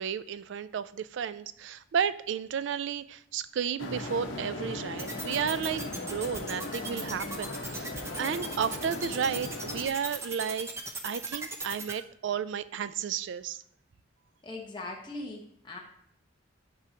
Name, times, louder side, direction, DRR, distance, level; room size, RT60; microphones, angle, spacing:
voice 1, 0.0-5.8 6.1-10.7 11.0-13.6, right 7 dB, 65° right, 15 dB, 0.3 m, -32 dB
sound 1, 3.8-9.9, left 2 dB, 80° left, 1.0 m, -38 dB
sound 2, 5.0-11.9, right 3 dB, 15° right, 0.6 m, -37 dB
voice 2, 14.4-15.8, left 2 dB, 25° left, 0 dB, 1.1 m, -40 dB
11.0 x 4.8 x 2.9 m, 0.66 s
head